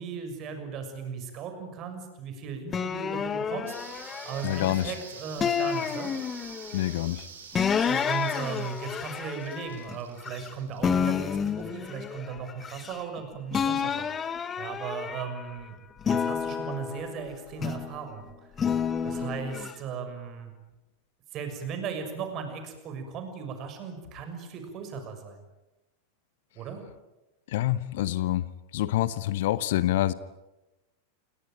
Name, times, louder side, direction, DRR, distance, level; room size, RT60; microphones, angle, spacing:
voice 1, 0.0-6.2 7.8-14.1 14.6-15.8 16.1-18.5 19.0-20.5 21.3-25.4 26.5-26.8, right 6 dB, 35° right, 6 dB, 6.4 m, -37 dB
sound 1, 2.7-4.9 5.4-6.8 7.5-10.5 10.8-13.2 13.5-15.5 16.0-18.0 18.6-19.7, left 7 dB, 20° left, 1.5 m, -30 dB
sound 2, 3.7-12.0, right 6 dB, 65° right, 6.7 m, -47 dB
voice 2, 4.4-4.9 6.7-7.3 27.5-28.4 28.7-30.1, left 14 dB, 55° left, 17 dB, 1.0 m, -26 dB
29.5 x 19.0 x 9.0 m, 1.0 s
figure-of-eight pair, 90°, 0 cm